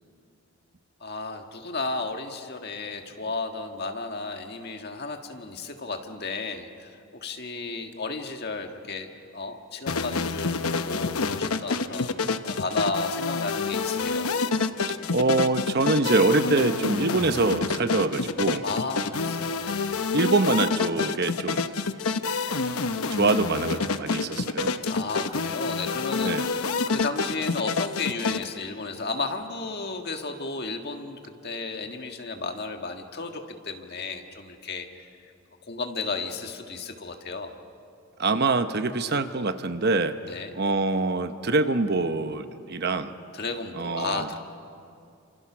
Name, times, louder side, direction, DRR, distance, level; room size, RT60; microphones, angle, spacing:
voice 1, 1.0-14.3 18.6-20.0 24.8-35.1 35.7-37.6 40.3-40.5 43.3-44.4, left 3 dB, 45° left, 4 dB, 1.7 m, -33 dB
sound 1, 9.9-28.4, left 4 dB, 75° left, 0.9 m, -28 dB
voice 2, 15.1-18.6 20.1-21.7 23.1-24.7 26.2-26.5 38.2-40.2 40.5-43.1 43.7-44.3, right 3 dB, 45° right, 9 dB, 0.9 m, -24 dB
29.5 x 26.5 x 6.2 m, 2.5 s
head